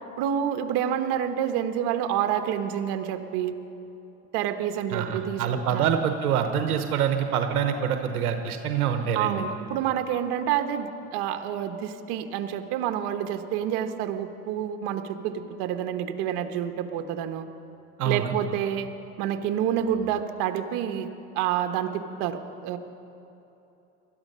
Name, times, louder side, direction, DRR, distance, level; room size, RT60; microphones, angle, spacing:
voice 1, 0.2-3.6 4.3-5.9 9.1-17.4 18.0-18.9 19.2-21.1 21.3-22.8, right 9 dB, 65° right, 7 dB, 1.2 m, -28 dB
voice 2, 4.9-9.4 18.0-18.3, right 8 dB, 90° right, 6 dB, 1.0 m, -26 dB
19.5 x 13.0 x 5.5 m, 2.9 s
hypercardioid pair, 90°, 43 cm